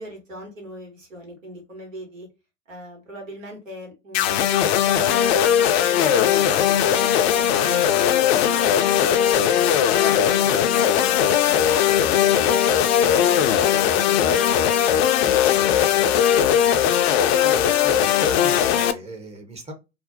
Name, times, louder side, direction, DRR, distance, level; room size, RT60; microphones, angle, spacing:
voice 1, 0.0-2.3 2.7-6.9 7.3-7.8 8.2-11.6 11.9-12.8 13.0-14.5 14.9-16.1, equal, 85° right, 1.3 m, -39 dB
sound 1, 4.1-18.9, left 10 dB, 55° left, 0.4 m, -19 dB
voice 2, 17.4-19.7, right 3 dB, 15° right, 0.7 m, -38 dB
2.5 x 2.0 x 2.6 m
figure-of-eight pair, 85°, 38 cm